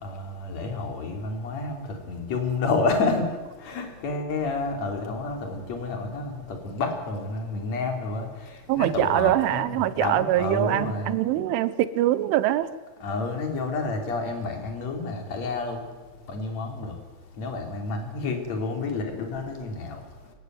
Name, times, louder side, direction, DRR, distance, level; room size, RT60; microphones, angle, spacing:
voice 1, 0.0-3.3 3.6-8.3 8.8-11.1 13.0-15.8 16.3-16.9 17.4-20.0, left 3 dB, 35° left, 4 dB, 4.0 m, -29 dB
voice 2, 8.7-12.7, right 13 dB, 80° right, 15 dB, 3.1 m, -23 dB
25.5 x 16.5 x 9.6 m, 1.3 s
omnidirectional pair, 5.9 m